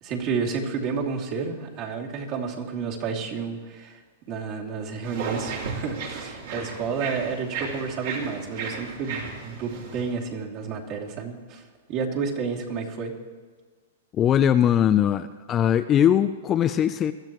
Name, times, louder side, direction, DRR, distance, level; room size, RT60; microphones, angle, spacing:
voice 1, 0.0-4.0 4.3-11.6 11.9-13.1, right 5 dB, 40° right, -1 dB, 2.7 m, -30 dB
sound 1, 5.0-10.1, right 5 dB, 65° right, 3.2 m, -34 dB
voice 2, 14.1-17.1, left 9 dB, 25° left, 10 dB, 0.4 m, -20 dB
22.0 x 13.0 x 3.1 m, 1.5 s
hypercardioid pair, 140°, 0 cm